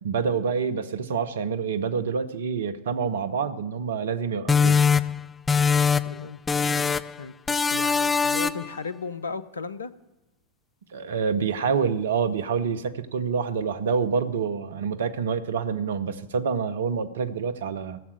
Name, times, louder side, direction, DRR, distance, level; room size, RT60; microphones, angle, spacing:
voice 1, 0.0-4.8 10.9-18.0, right 6 dB, 65° right, 12 dB, 0.8 m, -27 dB
sound 1, 4.5-6.2 6.5-7.2 7.5-8.7, left 5 dB, 15° left, 0.4 m, -22 dB
voice 2, 6.0-6.4 6.7-6.9 7.2-9.9, left 5 dB, 75° left, 14 dB, 0.6 m, -36 dB
15.0 x 7.3 x 8.9 m, 1.1 s
figure-of-eight pair, 90°, 0 cm